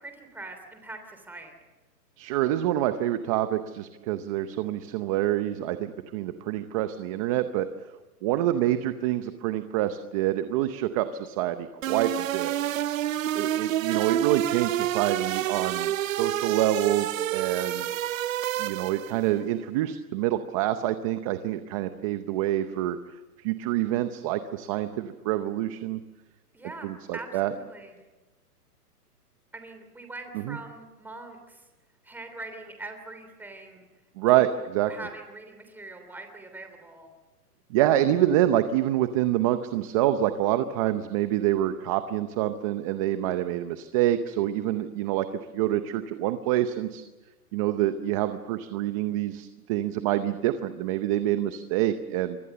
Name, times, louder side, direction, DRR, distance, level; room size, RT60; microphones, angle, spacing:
voice 1, 0.0-1.6 8.4-8.6 12.5-12.8 26.5-26.9 27.1-28.0 29.5-31.7 32.0-33.9 34.3-37.1, right 2 dB, 5° right, 5 dB, 3.2 m, -43 dB
voice 2, 2.2-7.7 8.2-12.5 13.3-17.9 18.6-23.0 23.4-26.0 26.8-27.5 30.5-30.6 34.2-34.9 37.7-45.3 45.5-47.0 47.5-52.4, right 13 dB, 20° right, 10 dB, 0.7 m, -26 dB
sound 1, 11.8-19.2, right 12 dB, 55° right, 0.7 m, -28 dB
27.0 x 24.0 x 6.9 m, 1.2 s
hypercardioid pair, 150°, 47 cm